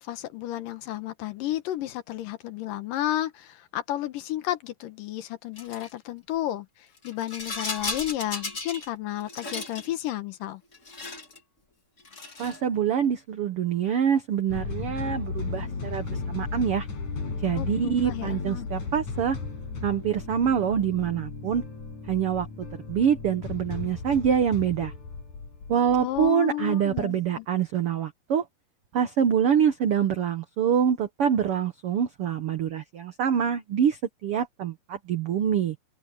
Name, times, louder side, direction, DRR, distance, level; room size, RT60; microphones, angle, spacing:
voice 1, 0.0-10.6 17.6-18.7 26.0-27.5, left 13 dB, 70° left, 2.6 m, -32 dB
Rattle, 5.6-5.9 7.0-8.9 9.2-9.9 10.7-11.4 12.0-12.6, left 3 dB, 25° left, 1.8 m, -35 dB
voice 2, 12.4-16.9 17.4-19.4 19.8-21.6 22.1-22.5 22.9-24.9 25.7-28.4 28.9-35.8, right 8 dB, 80° right, 1.3 m, -25 dB
sound 1, 14.5-26.3, left 4 dB, 55° left, 6.4 m, -35 dB
open air
omnidirectional pair, 4.1 m